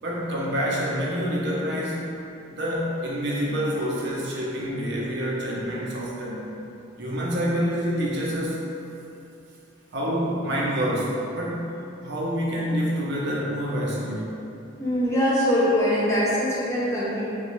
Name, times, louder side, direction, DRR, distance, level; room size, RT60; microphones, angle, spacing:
voice 1, 0.0-2.1 2.5-6.6 7.0-8.7 9.9-11.7 12.0-14.4, equal, 55° right, -4 dB, 0.6 m, -27 dB
voice 2, 14.8-17.2, equal, 15° left, -8 dB, 0.5 m, -22 dB
3.8 x 2.3 x 3.0 m, 2.8 s
head